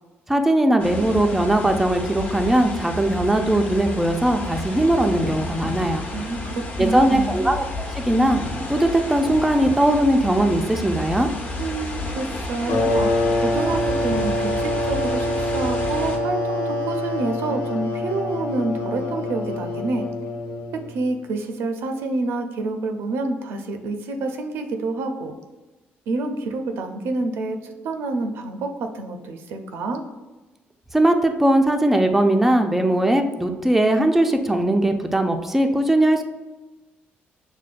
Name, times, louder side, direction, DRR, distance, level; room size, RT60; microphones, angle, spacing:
voice 1, 0.3-6.0 6.8-7.6 7.9-8.4 8.7-11.3 30.9-36.2, right 1 dB, 5° right, 5 dB, 0.3 m, -19 dB
sound 1, 0.8-16.2, left 1 dB, 40° left, 0.7 m, -31 dB
voice 2, 6.1-7.4 11.6-20.0 20.9-25.3 26.1-30.0, right 2 dB, 80° right, 6 dB, 0.5 m, -28 dB
sound 2, 12.7-21.1, left 1 dB, 70° left, 0.8 m, -25 dB
6.0 x 2.2 x 2.5 m, 1.2 s
cardioid pair, 120°, 4 cm